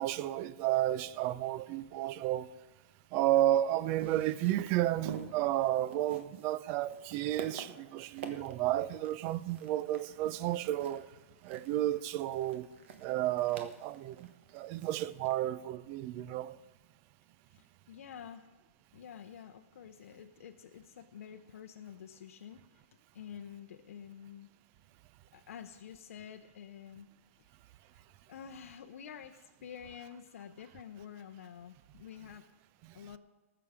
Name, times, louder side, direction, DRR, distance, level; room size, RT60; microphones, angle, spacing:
voice 1, 0.0-2.5 3.1-11.1 11.4-12.7 13.0-16.6 32.8-32.9, right 14 dB, 35° right, 0.5 m, -32 dB
sound 1, 3.7-15.3, right 6 dB, 55° right, 1.4 m, -49 dB
voice 2, 11.7-12.0 17.5-18.5 18.9-22.9 23.1-24.5 25.3-27.1 27.9-28.0 28.3-32.4 32.9-33.2, left 8 dB, 75° left, 0.7 m, -49 dB
19.5 x 6.9 x 4.9 m
hypercardioid pair, 150°, 8 cm